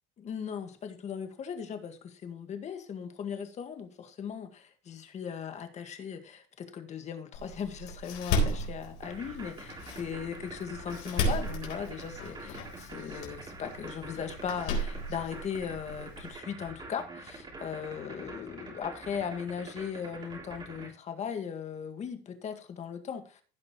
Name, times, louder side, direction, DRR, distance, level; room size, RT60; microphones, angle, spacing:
voice 1, 0.2-23.4, left 7 dB, 40° left, 7 dB, 1.9 m, -38 dB
Door, 7.3-16.3, equal, 85° left, 4.1 m, -35 dB
sound 1, 9.0-20.9, right 3 dB, 25° right, 3.3 m, -45 dB
16.0 x 6.0 x 3.2 m, 0.37 s
cardioid pair, 120°, 18 cm